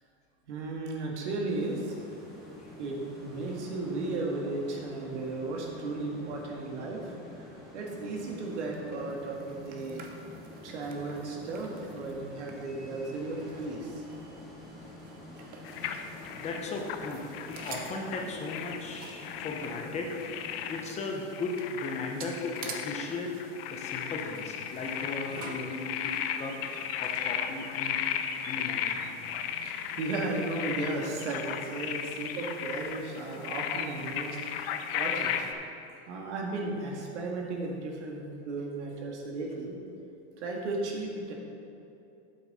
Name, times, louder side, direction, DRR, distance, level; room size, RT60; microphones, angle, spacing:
voice 1, 0.5-1.9 2.8-3.0 3.2-10.0 10.6-14.3 29.6-34.7 34.9-35.5 36.1-39.7 40.4-41.3, right 2 dB, 90° right, -1 dB, 1.9 m, -35 dB
sound 1, 1.5-21.0, left 1 dB, ahead, 2.0 m, -48 dB
sound 2, 8.2-16.8 17.1-20.4 20.8-20.9 21.1-27.8, right 5 dB, 25° right, 0.7 m, -49 dB
sound 3, 15.6-35.5, left 8 dB, 60° left, 0.7 m, -36 dB
voice 2, 16.4-20.3 20.7-23.4 23.7-26.6 27.0-28.1 28.4-29.0, left 3 dB, 20° left, 1 dB, 0.8 m, -37 dB
8.8 x 7.6 x 4.1 m, 2.7 s
supercardioid pair, 155°, 34 cm